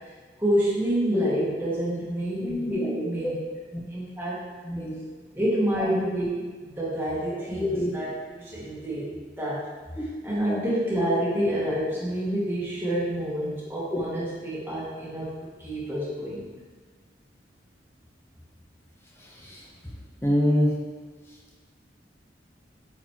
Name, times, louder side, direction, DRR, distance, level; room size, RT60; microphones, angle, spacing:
voice 1, 0.4-3.3 3.9-4.4 5.3-9.1 9.4-9.7 10.0-15.3 15.6-16.5, right 1 dB, 10° right, -8 dB, 1.3 m, -28 dB
voice 2, 2.4-2.9 3.2-3.3 4.7-5.0 7.6-7.9 10.5-10.6 13.9-14.0 20.2-20.8, left 1 dB, 15° left, -2 dB, 0.9 m, -25 dB
8.8 x 4.0 x 3.1 m, 1.5 s
head